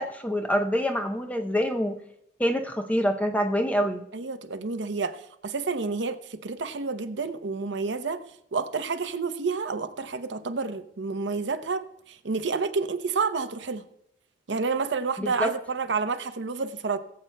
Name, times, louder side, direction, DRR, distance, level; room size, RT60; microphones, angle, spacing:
voice 1, 0.0-2.0 2.4-4.0 15.2-15.5, equal, 10° left, 0.6 m, -26 dB
voice 2, 4.1-8.2 8.5-13.8 14.5-17.0, right 4 dB, 75° right, 0.7 m, -29 dB
22.0 x 7.7 x 2.2 m
head